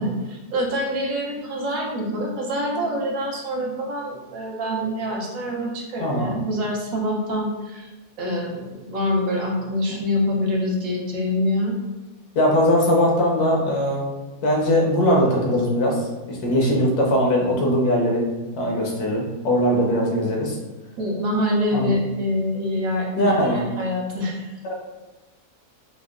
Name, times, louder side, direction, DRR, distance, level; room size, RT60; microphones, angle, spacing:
voice 1, 0.0-7.9 8.2-11.8 21.0-24.4, left 1 dB, 70° right, -1 dB, 1.1 m, -25 dB
voice 2, 6.0-6.4 12.3-14.1 14.4-16.0 16.3-18.2 18.6-20.6 21.7-21.9 23.2-23.6, equal, 80° left, -1 dB, 1.3 m, -20 dB
4.7 x 2.1 x 2.4 m, 1.1 s
omnidirectional pair, 1.6 m